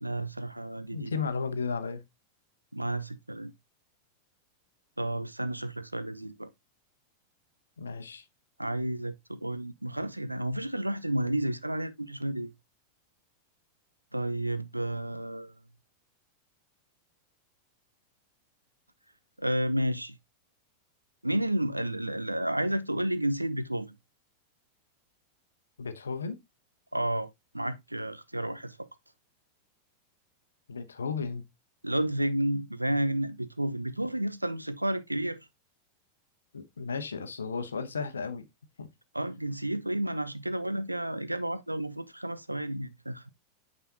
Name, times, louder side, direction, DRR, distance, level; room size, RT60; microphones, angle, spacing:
voice 1, 0.0-1.2 2.7-3.5 5.0-6.5 8.6-12.5 14.1-15.5 19.4-20.2 21.2-23.9 26.9-27.3 27.5-28.8 31.8-35.4 39.1-43.3, right 1 dB, 85° right, 0.5 m, -31 dB
voice 2, 0.9-2.0 7.8-8.2 25.8-26.4 30.7-31.4 36.5-38.5 38.8-38.9, left 5 dB, 70° left, 0.9 m, -34 dB
8.8 x 4.1 x 2.8 m
figure-of-eight pair, 90°, 0 cm